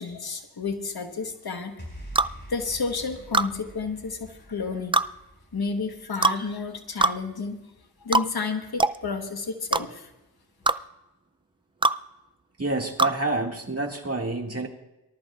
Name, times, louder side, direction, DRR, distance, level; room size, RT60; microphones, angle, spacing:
voice 1, 0.0-1.8 2.5-5.0 5.5-7.6 8.0-10.1, left 4 dB, 90° left, 5 dB, 1.3 m, -31 dB
sound 1, 1.8-8.2, equal, 30° left, 5.5 m, -46 dB
sound 2, 2.2-2.3 3.3-3.5 4.9-5.1 6.2-6.4 7.0-7.2 8.1-8.3 8.8-9.0 9.7-9.8 10.7-10.8 11.8-12.0 13.0-13.2, right 2 dB, 15° right, 0.3 m, -21 dB
voice 2, 12.6-14.7, right 2 dB, 40° right, 2 dB, 2.1 m, -28 dB
24.0 x 13.0 x 2.4 m, 0.98 s
wide cardioid pair, 55°, 36 cm